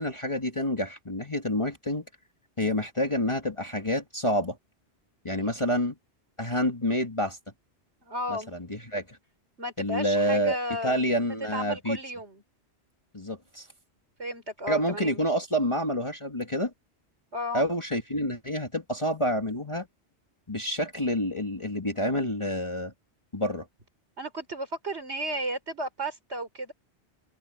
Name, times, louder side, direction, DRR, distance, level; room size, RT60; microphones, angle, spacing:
voice 1, 0.0-2.1 2.6-4.6 5.2-6.0 6.4-7.4 8.3-9.2 9.8-10.6 10.8-12.0 13.1-13.7 14.7-16.7 17.5-19.9 20.5-22.9 23.3-23.7, equal, 25° left, 2.1 m, -28 dB
voice 2, 8.0-8.5 9.6-12.4 14.2-15.2 17.3-17.6 24.2-26.7, equal, 80° right, 4.9 m, -34 dB
open air
omnidirectional pair, 1.1 m